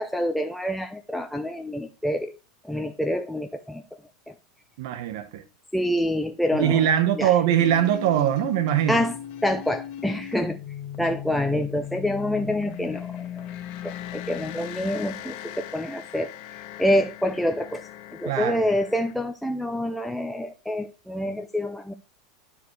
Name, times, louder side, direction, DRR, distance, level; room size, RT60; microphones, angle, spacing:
voice 1, 0.0-2.4 2.6-3.8 4.3-4.4 5.7-7.3 8.9-10.6 11.0-13.5 13.8-16.3 16.8-21.9, left 1 dB, ahead, 0.6 m, -27 dB
voice 2, 4.8-5.4 6.5-9.0 18.3-18.6, right 11 dB, 65° right, 1.1 m, -22 dB
sound 1, 7.6-19.1, left 11 dB, 55° left, 1.3 m, -38 dB
12.5 x 4.9 x 3.3 m
hypercardioid pair, 95°, 2 cm